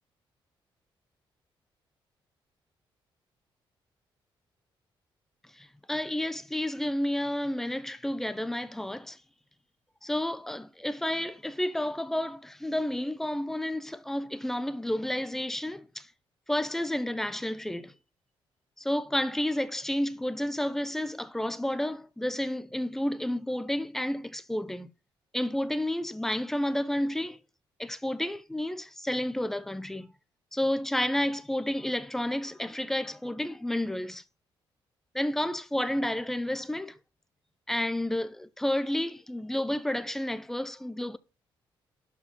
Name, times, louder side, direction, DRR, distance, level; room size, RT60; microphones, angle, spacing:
voice 1, 5.6-9.2 10.0-16.1 16.5-17.9 18.8-24.9 25.3-27.4 27.8-30.1 30.5-34.2 35.1-37.0 37.7-41.2, left 1 dB, 5° left, 0.6 m, -31 dB
12.0 x 4.9 x 5.4 m
cardioid pair, 150°, 9 cm